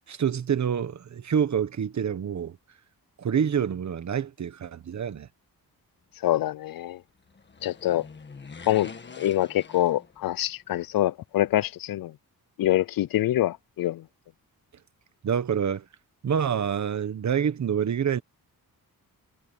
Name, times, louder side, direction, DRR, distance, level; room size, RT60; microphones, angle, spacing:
voice 1, 0.1-2.6 3.2-5.3 15.2-15.8 16.2-18.2, right 8 dB, 50° right, 1.3 m, -27 dB
voice 2, 6.2-7.0 7.6-8.1 8.7-8.9 9.2-12.1 12.6-14.0, left 13 dB, 70° left, 0.5 m, -25 dB
sound 1, 7.2-10.6 10.9-11.0, left 4 dB, 30° left, 1.7 m, -45 dB
wide cardioid pair, 160°, 36 cm